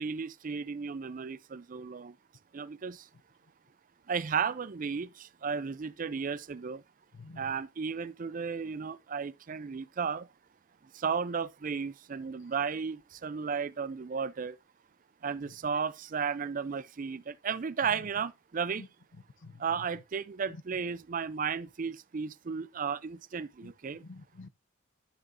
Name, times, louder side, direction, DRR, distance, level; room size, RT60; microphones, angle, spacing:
voice 1, 0.0-2.1 2.5-3.0 4.1-6.8 7.4-10.3 10.9-14.6 15.2-18.8 19.6-24.0, right 6 dB, 40° right, 0.4 m, -34 dB
voice 2, 7.1-7.5 17.8-18.0 18.8-18.9 19.1-19.9 20.5-20.8 23.6-24.5, left 3 dB, 60° left, 0.6 m, -49 dB
10.0 x 7.7 x 2.6 m
head